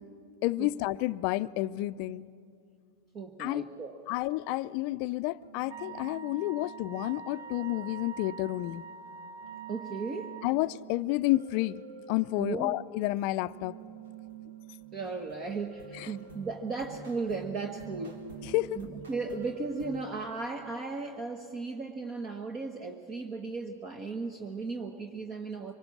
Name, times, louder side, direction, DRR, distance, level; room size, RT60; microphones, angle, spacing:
voice 1, 0.4-2.3 3.4-3.6 4.1-8.8 10.4-11.8 12.1-13.8 15.9-16.1 18.5-18.8, left 18 dB, 55° left, 15 dB, 0.5 m, -30 dB
voice 2, 3.1-4.0 9.7-10.3 12.4-12.7 14.9-18.2 18.8-25.7, right 4 dB, 35° right, 5 dB, 1.3 m, -36 dB
sound 1, 5.4-20.0, right 7 dB, 85° right, 2.3 m, -49 dB
Wind instrument woodwind instrument, 5.7-10.5, right 6 dB, 65° right, 0.8 m, -44 dB
24.5 x 19.5 x 7.3 m, 2.3 s
hypercardioid pair, 110°, 0 cm